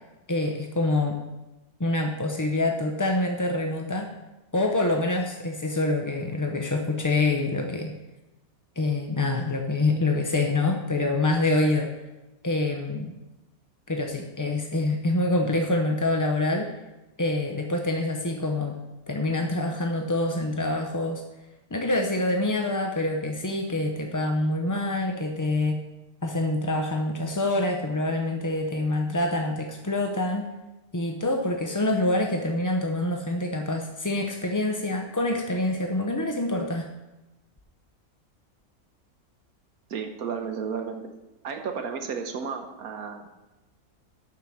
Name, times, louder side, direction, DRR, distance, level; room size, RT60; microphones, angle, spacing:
voice 1, 0.3-1.2 1.8-4.1 4.5-7.9 8.8-11.9 12.4-13.1 13.9-16.7 17.2-18.8 19.1-21.2 21.7-25.8 26.2-30.5 30.9-36.9, left 2 dB, 30° left, 3 dB, 0.3 m, -26 dB
voice 2, 39.9-41.1 41.4-43.4, right 6 dB, 75° right, 5 dB, 1.4 m, -33 dB
7.4 x 6.7 x 7.3 m, 1.0 s
omnidirectional pair, 1.6 m